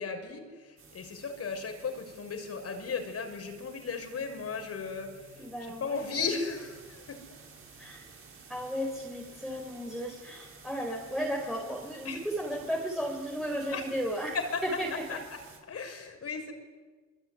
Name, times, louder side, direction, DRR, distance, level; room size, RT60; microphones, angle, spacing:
voice 1, 0.0-7.2 12.0-12.2 13.7-13.9 14.3-14.6 14.9-15.4 15.7-16.5, left 5 dB, 55° left, 5 dB, 6.6 m, -36 dB
sound 1, 0.8-15.6, right 5 dB, 45° right, 6.1 m, -53 dB
voice 2, 5.3-6.3 7.8-8.0 8.5-15.2, equal, ahead, -2 dB, 5.3 m, -35 dB
27.0 x 22.0 x 9.7 m, 1.4 s
cardioid pair, 90°, 30 cm